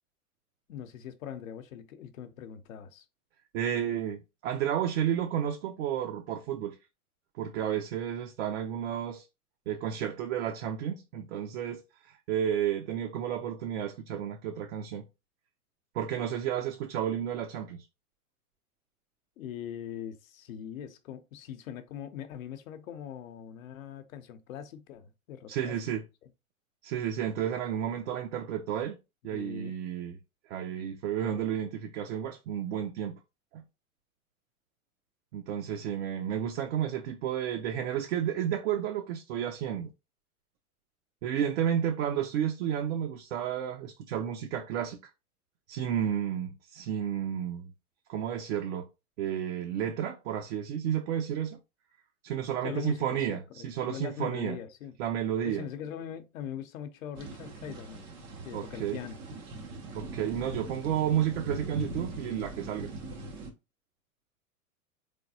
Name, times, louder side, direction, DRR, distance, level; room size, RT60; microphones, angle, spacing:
voice 1, 0.7-3.0 19.4-25.8 26.2-26.3 29.3-29.7 52.6-54.9 55.4-58.1 58.4-59.2, left 9 dB, 65° left, 0.8 m, -41 dB
voice 2, 3.5-6.7 7.4-9.3 9.7-15.0 15.9-17.9 25.5-26.0 26.8-29.0 29.2-30.2 30.5-33.2 33.5-33.6 35.3-39.9 41.2-45.0 45.7-47.7 48.1-48.9 49.2-51.6 52.2-54.6 55.0-55.6 58.5-59.0 59.9-62.9, right 9 dB, 50° right, 0.6 m, -32 dB
sound 1, 57.1-63.5, right 2 dB, 15° right, 0.3 m, -41 dB
3.8 x 3.4 x 2.7 m
figure-of-eight pair, 100°, 44 cm